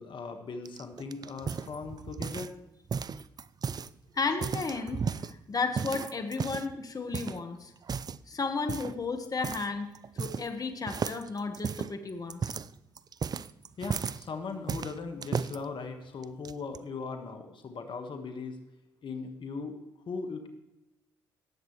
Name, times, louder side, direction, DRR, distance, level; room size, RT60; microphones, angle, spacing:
voice 1, 0.0-2.5 13.8-18.6 19.0-19.8 20.1-20.5, left 4 dB, 50° left, 5 dB, 1.5 m, -39 dB
sound 1, 0.7-2.6 2.9-3.9 4.3-5.3 5.8-6.7 7.1-7.4 7.8-8.2 8.7-9.0 9.4-9.7 9.9-10.6 10.9-14.2 14.7-15.6 16.2-16.8, right 6 dB, 40° right, 0.5 m, -34 dB
voice 2, 4.1-7.7 8.3-9.9 10.2-12.6, left 4 dB, 35° left, 6 dB, 1.5 m, -33 dB
18.0 x 8.1 x 3.2 m, 0.95 s
hypercardioid pair, 55°, 10 cm